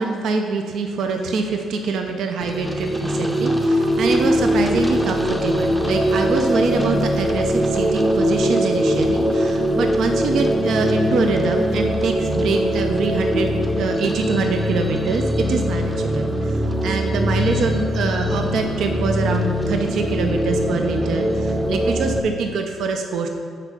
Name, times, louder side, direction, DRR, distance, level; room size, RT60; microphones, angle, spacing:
voice 1, 0.0-23.3, right 4 dB, 75° right, 4 dB, 0.5 m, -24 dB
sound 1, 2.4-22.2, equal, 5° right, 0.6 m, -21 dB
6.0 x 4.4 x 5.9 m, 2.3 s
cardioid pair, 90°, 0 cm